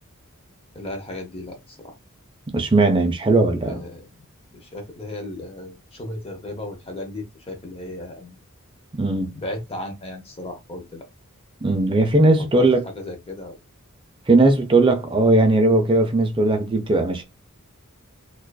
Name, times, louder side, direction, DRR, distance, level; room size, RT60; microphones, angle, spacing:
voice 1, 0.7-2.0 3.6-4.0 4.5-8.4 9.3-11.1 12.5-13.6, left 1 dB, 25° left, 0.6 m, -35 dB
voice 2, 2.5-3.8 9.0-9.3 11.6-12.8 14.3-17.2, right 2 dB, 25° right, 0.4 m, -18 dB
2.4 x 2.3 x 2.2 m
head